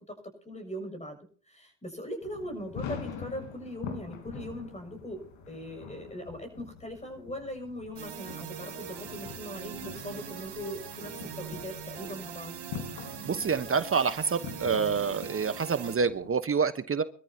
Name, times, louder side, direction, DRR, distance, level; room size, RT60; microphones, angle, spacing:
voice 1, 0.4-1.2 1.5-12.5, equal, 15° left, 5 dB, 7.1 m, -40 dB
sound 1, 2.2-16.3, left 7 dB, 65° left, 4.1 m, -44 dB
sound 2, 7.9-15.9, right 9 dB, 50° right, 3.7 m, -42 dB
voice 2, 13.2-17.0, right 5 dB, 25° right, 12 dB, 1.2 m, -27 dB
24.5 x 13.5 x 2.9 m, 0.43 s
supercardioid pair, 80°, 49 cm